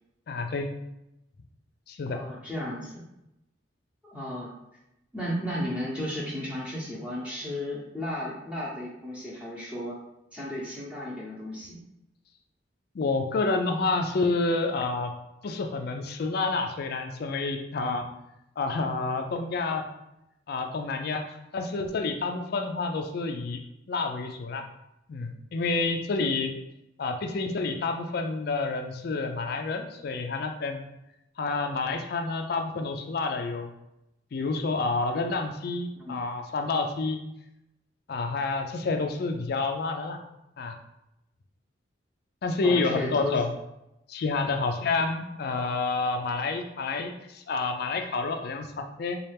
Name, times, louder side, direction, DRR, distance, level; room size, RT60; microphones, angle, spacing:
voice 1, 0.3-0.7 1.9-2.2 12.9-15.1 15.4-18.0 18.6-19.8 20.5-21.2 21.5-23.6 23.9-24.6 25.1-26.5 27.0-30.8 31.4-33.7 34.3-37.2 38.1-40.2 40.6-40.8 42.4-43.5 44.1-49.2, left 3 dB, 55° left, 5 dB, 0.4 m, -29 dB
voice 2, 2.1-3.0 4.0-4.6 5.1-10.0 10.3-11.8 17.8-18.2 36.0-36.2 42.6-43.4, left 1 dB, 5° right, -6 dB, 0.7 m, -34 dB
4.2 x 2.3 x 3.3 m, 0.87 s
head